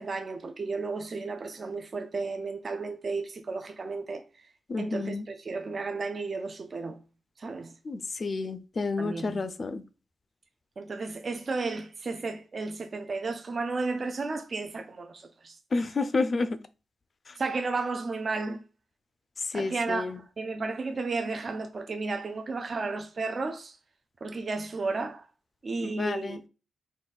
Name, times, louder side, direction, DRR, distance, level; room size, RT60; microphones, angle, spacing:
voice 1, 0.0-4.2 4.8-7.0 7.4-7.7 9.0-9.4 10.8-15.6 17.4-18.6 19.5-23.7 24.2-25.3 25.6-26.4, right 3 dB, 40° right, 0.4 m, -33 dB
voice 2, 4.7-5.3 7.9-9.8 15.7-16.6 19.5-20.2 25.8-26.4, left 3 dB, 35° left, 0.4 m, -30 dB
3.8 x 2.4 x 3.9 m
wide cardioid pair, 140°, 0 cm